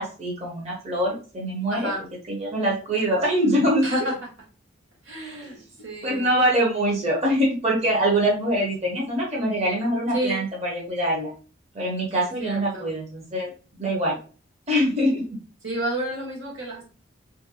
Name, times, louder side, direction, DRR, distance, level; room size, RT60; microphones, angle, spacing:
voice 1, 0.0-1.9 2.3-4.1 5.2-5.6 6.0-11.3 11.7-14.2 14.7-15.2, right 1 dB, 35° right, -3 dB, 0.7 m, -24 dB
voice 2, 1.7-2.0 3.8-4.1 5.0-6.3 10.1-10.4 12.2-12.9 15.6-16.8, right 1 dB, 70° right, -2 dB, 1.1 m, -30 dB
3.0 x 2.6 x 2.6 m, 0.38 s
head